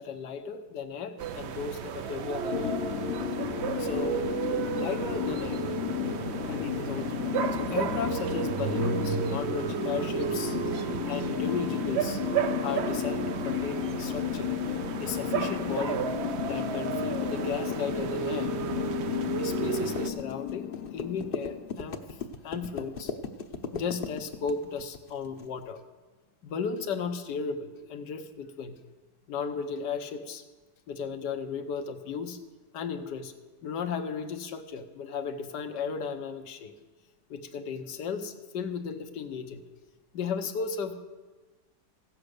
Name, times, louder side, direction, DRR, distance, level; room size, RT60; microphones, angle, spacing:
voice 1, 0.0-2.8 3.8-4.3 4.7-5.6 6.5-7.2 7.6-10.6 11.1-12.2 12.6-14.5 15.0-16.1 16.5-18.6 19.3-20.7 20.9-22.2 22.4-23.1 23.7-25.8 26.4-28.8 29.3-30.4 30.9-32.4 32.7-33.3 33.6-36.7 37.3-39.6 40.1-41.0, left 6 dB, 85° left, 6 dB, 1.6 m, -35 dB
sound 1, 1.2-20.1, right 8 dB, 65° right, 0.6 m, -32 dB
sound 2, 2.5-21.7, left 12 dB, 70° left, 1.0 m, -33 dB
sound 3, 13.9-25.5, left 5 dB, 50° left, 0.7 m, -40 dB
16.0 x 7.6 x 6.6 m, 1.3 s
omnidirectional pair, 1.8 m